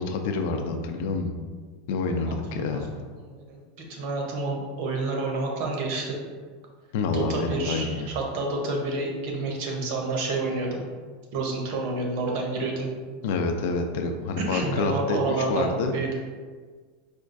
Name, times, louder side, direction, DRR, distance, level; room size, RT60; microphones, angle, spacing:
voice 1, 0.0-1.3 1.9-2.9 6.9-8.1 13.2-16.1, left 3 dB, 60° left, 5 dB, 0.3 m, -28 dB
voice 2, 3.9-6.2 7.1-10.8 11.3-12.9 14.5-16.1, right 3 dB, 50° right, 0 dB, 0.7 m, -29 dB
4.2 x 2.3 x 2.5 m, 1.5 s
supercardioid pair, 170°, 0 cm